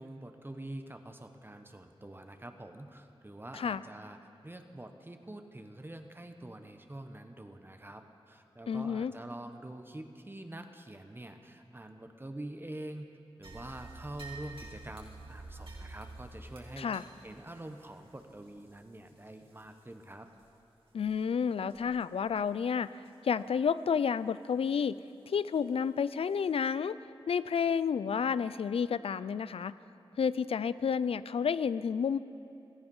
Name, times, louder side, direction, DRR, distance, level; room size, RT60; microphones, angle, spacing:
voice 1, 0.0-4.2 4.4-13.1 13.4-20.3, right 1 dB, 20° right, 6 dB, 1.0 m, -46 dB
voice 2, 8.7-9.1 16.8-17.0 20.9-22.9 23.2-25.0 25.3-26.9 27.3-29.7 30.2-32.2, left 6 dB, 85° left, 16 dB, 0.4 m, -30 dB
sound 1, 13.4-20.0 20.3-20.5 21.0-21.2 21.7-22.0 22.4-22.5 23.0-23.1 25.5-25.6 26.2-26.3, right 2 dB, 65° right, 3.2 m, -49 dB
17.5 x 14.0 x 5.5 m, 2.7 s
wide cardioid pair, 70°, 10 cm